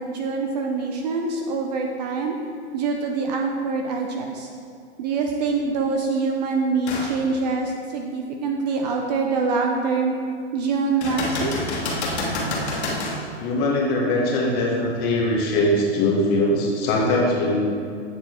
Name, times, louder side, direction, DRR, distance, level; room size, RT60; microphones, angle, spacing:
voice 1, 0.0-2.4 2.7-4.5 5.0-10.1 10.5-11.5, right 4 dB, 35° right, 2 dB, 0.6 m, -25 dB
sound 1, 6.9-7.1 7.7-7.8 11.0-13.2 16.9-17.0, left 2 dB, 70° left, 1.7 m, -27 dB
voice 2, 13.4-17.6, left 1 dB, 30° left, -2 dB, 1.3 m, -21 dB
8.2 x 4.4 x 4.3 m, 2.3 s
hypercardioid pair, 150°, 34 cm